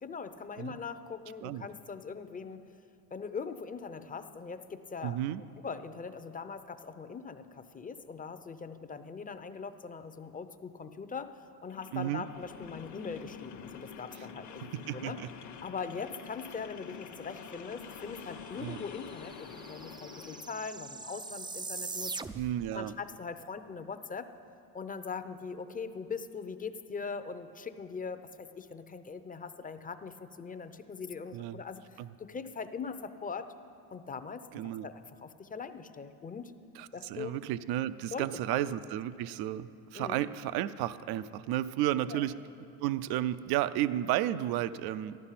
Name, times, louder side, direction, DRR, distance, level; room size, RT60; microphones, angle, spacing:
voice 1, 0.0-2.7 3.1-5.2 5.6-11.3 11.6-15.2 15.6-22.2 22.7-24.3 24.7-33.5 33.9-36.5 36.9-37.4 38.1-38.7 39.9-40.2 42.1-42.3, left 5 dB, 20° left, 10 dB, 0.7 m, -41 dB
voice 2, 5.0-5.4 11.9-12.2 14.7-15.3 18.6-18.8 22.3-22.9 31.3-31.6 32.0-32.1 34.5-34.9 36.8-42.3 42.8-45.2, right 13 dB, 65° right, 15 dB, 0.6 m, -32 dB
sound 1, 11.7-20.5, left 6 dB, 45° left, 1.0 m, -47 dB
sound 2, 18.2-18.3 18.5-22.7, right 4 dB, 10° right, 0.4 m, -42 dB
14.0 x 12.0 x 5.7 m, 2.5 s
supercardioid pair, 95°, 40 cm